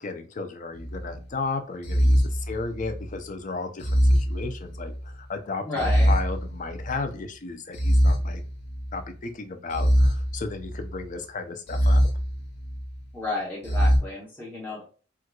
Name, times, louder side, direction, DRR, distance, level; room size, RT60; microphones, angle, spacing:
voice 1, 0.0-8.4 8.9-12.1, left 3 dB, 40° left, 6 dB, 0.5 m, -34 dB
sound 1, 0.8-1.2 1.8-3.1 3.8-5.1 5.8-7.1 7.7-9.0 9.7-11.0 11.7-13.0 13.6-14.0, equal, 55° left, 0.9 m, -23 dB
voice 2, 5.7-6.1 13.1-14.8, left 2 dB, 10° left, -6 dB, 0.9 m, -32 dB
4.4 x 2.4 x 2.2 m, 0.37 s
head